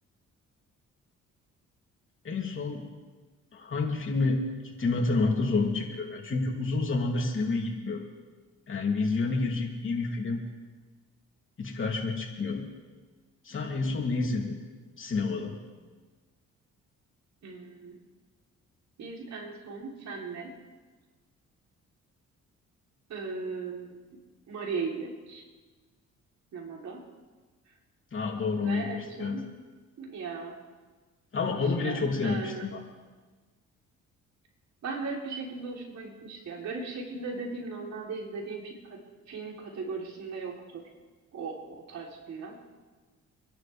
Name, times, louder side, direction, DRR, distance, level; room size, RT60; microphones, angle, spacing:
voice 1, 2.2-2.8 3.5-8.0 8.7-10.4 11.6-12.6 13.4-14.6 15.0-15.5 28.1-28.9 29.2-29.4 31.3-32.8, left 3 dB, 40° left, 0 dB, 3.1 m, -29 dB
voice 2, 17.4-18.0 19.0-20.5 23.1-24.2 24.5-25.4 26.5-27.0 27.7-27.8 28.6-29.5 30.0-30.6 31.5-32.7 34.8-39.0 39.3-40.9 41.3-42.6, right 4 dB, 65° right, -1 dB, 3.7 m, -38 dB
26.5 x 11.0 x 3.5 m, 1.4 s
cardioid pair, 90°, 30 cm